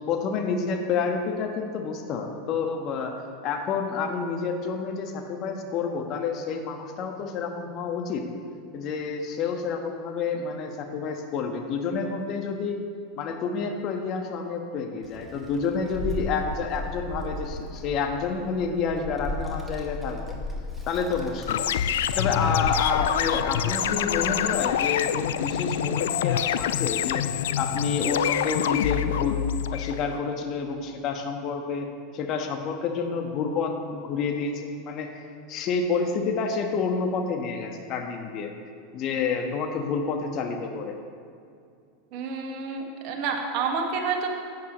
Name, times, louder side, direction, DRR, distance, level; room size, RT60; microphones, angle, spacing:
voice 1, 0.1-3.1 3.4-8.2 8.7-12.8 13.2-20.4 20.9-21.6 22.2-29.4 29.7-31.9 32.1-38.5 38.9-41.0, left 5 dB, 45° left, 4 dB, 1.5 m, -29 dB
Child speech kid speaking, 15.0-29.4, left 1 dB, ahead, 2.1 m, -38 dB
sound 1, 21.5-30.2, left 10 dB, 75° left, 0.4 m, -26 dB
voice 2, 42.1-44.3, right 5 dB, 55° right, 2 dB, 1.8 m, -29 dB
16.0 x 9.2 x 3.2 m, 2.3 s
hypercardioid pair, 90°, 0 cm